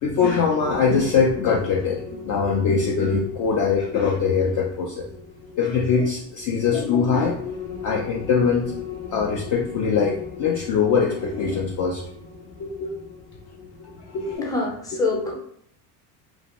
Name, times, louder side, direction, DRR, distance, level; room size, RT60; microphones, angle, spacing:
voice 1, 0.0-5.1 5.6-7.4 7.8-8.7 9.1-12.0 12.6-12.9 14.1-14.6 15.2-15.3, left 5 dB, 40° left, -1 dB, 0.4 m, -22 dB
sound 1, 0.6-14.4, left 5 dB, 80° left, 0.9 m, -38 dB
voice 2, 14.4-15.3, left 3 dB, 5° left, -2 dB, 0.7 m, -25 dB
2.5 x 2.2 x 2.9 m, 0.66 s
supercardioid pair, 100°, 47 cm